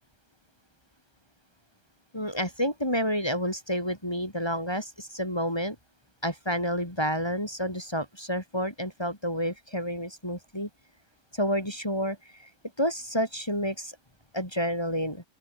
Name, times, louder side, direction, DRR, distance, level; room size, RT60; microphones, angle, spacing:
voice 1, 2.1-5.8 6.2-10.7 11.3-12.2 12.8-13.9 14.3-15.2, equal, 15° left, 5.5 m, -29 dB
open air
omnidirectional pair, 1.6 m